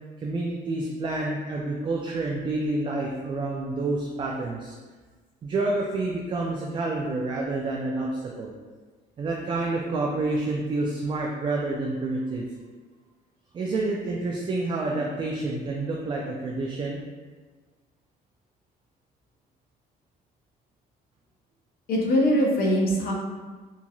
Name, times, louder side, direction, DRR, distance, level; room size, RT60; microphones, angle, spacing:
voice 1, 0.2-4.7 5.4-8.5 9.2-12.5 13.5-17.0, right 2 dB, 30° right, -2 dB, 0.3 m, -28 dB
voice 2, 21.9-23.1, equal, 60° left, -1 dB, 0.7 m, -22 dB
2.9 x 2.6 x 2.3 m, 1.4 s
cardioid pair, 110°, 17 cm